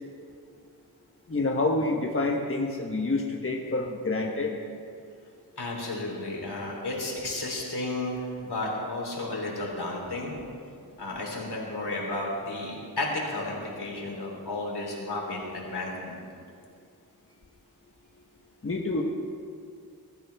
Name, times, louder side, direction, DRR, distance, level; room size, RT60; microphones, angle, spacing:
voice 1, 1.3-4.6 18.6-19.0, left 2 dB, 35° left, 0 dB, 1.2 m, -27 dB
voice 2, 5.6-10.3 11.0-16.2, left 2 dB, 75° left, -2 dB, 3.6 m, -33 dB
22.0 x 13.5 x 3.5 m, 2.3 s
wide cardioid pair, 85°, 39 cm